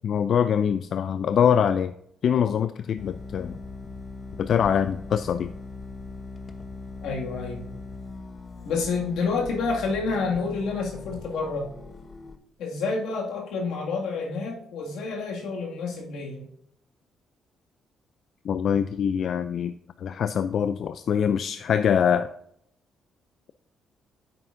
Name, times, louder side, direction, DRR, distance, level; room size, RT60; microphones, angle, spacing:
voice 1, 0.0-1.9 2.2-3.6 4.4-5.5 18.4-19.7 20.0-22.3, left 8 dB, 60° left, 11 dB, 0.3 m, -24 dB
sound 1, 3.0-12.4, left 3 dB, 35° left, 0.9 m, -40 dB
voice 2, 7.0-7.6 8.6-11.7 12.6-16.5, left 4 dB, 85° left, -1 dB, 2.0 m, -29 dB
9.9 x 8.0 x 2.6 m, 0.72 s
cardioid pair, 90°, 0 cm